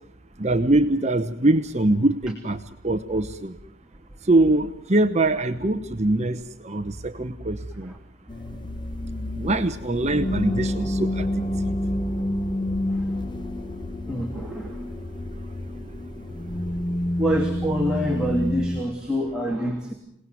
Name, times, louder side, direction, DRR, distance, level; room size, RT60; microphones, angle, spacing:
voice 1, 0.4-2.6 2.8-3.5 4.3-7.9 9.4-11.3 11.6-11.7, right 2 dB, 30° right, 7 dB, 1.0 m, -23 dB
sound 1, 8.3-18.8, left 1 dB, 20° left, 1.4 m, -28 dB
voice 2, 14.1-14.8 17.2-19.9, equal, 5° right, -1 dB, 2.9 m, -26 dB
27.5 x 19.0 x 9.5 m, 0.78 s
head